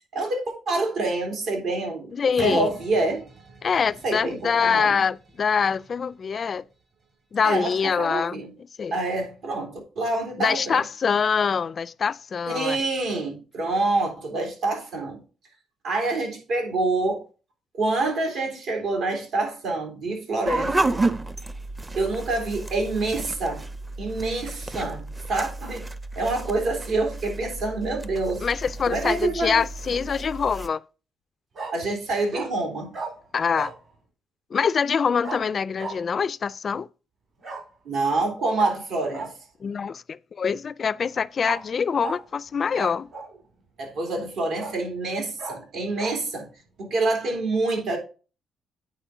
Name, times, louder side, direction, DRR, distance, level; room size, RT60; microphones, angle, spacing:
voice 1, 0.1-3.2 4.0-5.0 7.4-8.5 8.9-10.8 12.5-15.2 15.8-17.2 17.7-20.9 21.9-23.6 24.0-25.9 26.1-28.5 28.9-29.6 31.7-32.9 37.8-39.3 43.8-46.5 46.8-48.0, right 2 dB, 75° right, 3.2 m, -27 dB
voice 2, 2.1-2.7 3.6-6.6 7.3-8.4 8.8-8.9 10.4-12.8 28.4-30.8 33.3-33.7 34.5-36.9 39.6-43.1, left 6 dB, 45° left, 0.3 m, -24 dB
sound 1, 2.4-8.1 8.7-8.8, right 3 dB, 40° right, 2.5 m, -46 dB
sound 2, 20.4-30.7, right 2 dB, 20° right, 0.6 m, -31 dB
Bark, 29.9-30.2 31.6-31.8 32.3-32.5 32.9-33.1 33.5-33.8 35.2-35.4 35.8-36.0 37.4-37.6 38.6-38.7 39.1-39.3 41.4-41.6 42.0-42.2 42.7-43.4 43.9-44.0 44.6-44.8 45.4-45.6 46.0-46.2, right 4 dB, 55° right, 4.6 m, -34 dB
9.1 x 4.3 x 4.9 m
cardioid pair, 90°, 0 cm